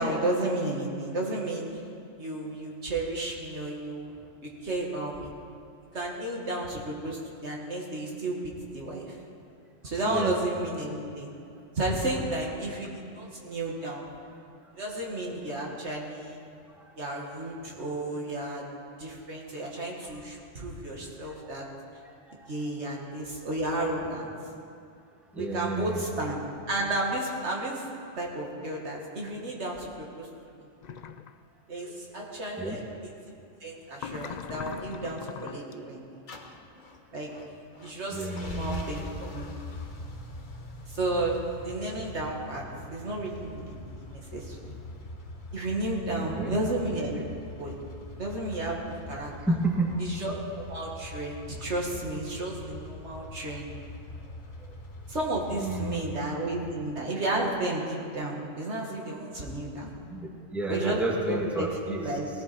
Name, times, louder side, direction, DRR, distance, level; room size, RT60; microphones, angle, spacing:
voice 1, 0.0-1.7 2.2-4.1 4.4-5.3 5.9-9.2 9.8-11.3 11.8-14.1 14.8-16.4 17.0-18.6 19.0-21.7 22.5-24.3 25.3-26.4 26.7-27.9 28.2-30.3 31.7-33.1 33.6-36.0 37.1-37.3 37.8-39.5 40.9-42.6 42.9-44.7 45.5-47.2 47.6-47.8 48.2-49.3 50.0-53.7 55.1-59.9 60.7-61.0 61.3-62.3, right 2 dB, 60° right, -2 dB, 2.1 m, -32 dB
voice 2, 25.3-26.0 32.6-32.8 38.1-38.8 46.2-46.6 49.4-50.0 55.5-56.0 60.1-62.1, right 2 dB, ahead, -2 dB, 1.5 m, -31 dB
sound 1, 30.8-31.3 33.9-35.7, left 7 dB, 85° left, 0.3 m, -40 dB
sound 2, 36.3-56.1, left 2 dB, 40° left, 1.2 m, -43 dB
18.5 x 14.0 x 4.3 m, 2.4 s
omnidirectional pair, 1.3 m